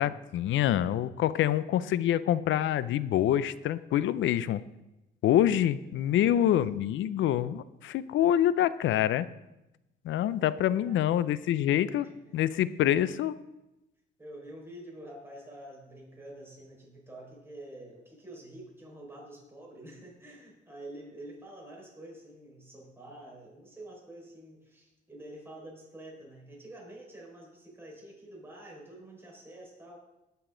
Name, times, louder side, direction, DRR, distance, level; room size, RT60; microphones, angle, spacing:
voice 1, 0.0-4.6 5.2-9.3 10.0-12.1 12.3-13.3, left 11 dB, 75° left, 16 dB, 0.5 m, -26 dB
voice 2, 5.9-6.6 10.7-11.0 12.0-12.4 14.2-30.0, right 1 dB, 10° right, -3 dB, 5.1 m, -48 dB
20.0 x 6.9 x 3.9 m, 0.96 s
cardioid pair, 90°, 20 cm